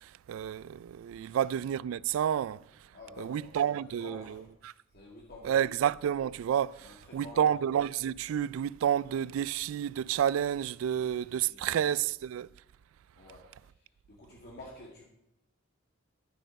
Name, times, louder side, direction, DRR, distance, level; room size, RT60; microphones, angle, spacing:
voice 1, 0.3-2.6 3.2-4.2 5.5-6.8 7.1-12.5, right 9 dB, 85° right, 0.3 m, -29 dB
voice 2, 1.2-1.5 2.9-5.7 6.8-7.6 10.9-12.0 13.2-15.0, left 2 dB, 55° left, 2.1 m, -51 dB
12.0 x 7.6 x 5.2 m
head